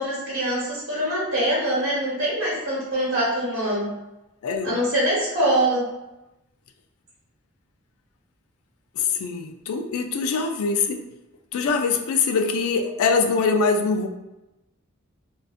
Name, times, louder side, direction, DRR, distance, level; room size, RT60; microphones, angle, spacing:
voice 1, 0.0-3.9 4.6-5.8, right 1 dB, 65° right, -7 dB, 1.2 m, -24 dB
voice 2, 4.4-4.7 9.0-11.0 11.5-14.1, left 4 dB, 75° left, 6 dB, 0.3 m, -23 dB
2.5 x 2.2 x 2.4 m, 0.98 s
head